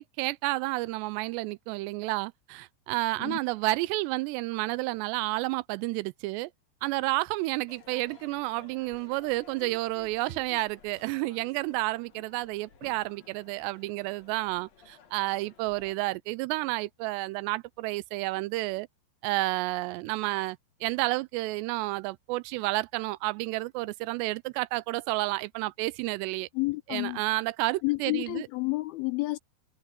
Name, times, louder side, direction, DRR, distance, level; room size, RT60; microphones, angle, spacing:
voice 1, 0.0-6.5 6.8-18.9 19.2-26.5 26.9-28.5, right 21 dB, 90° right, 2.8 m, -31 dB
Crowd / Fireworks, 7.7-15.9, left 6 dB, 50° left, 2.7 m, -54 dB
voice 2, 26.5-27.2 27.8-29.4, left 22 dB, 85° left, 2.3 m, -30 dB
omnidirectional pair, 4.8 m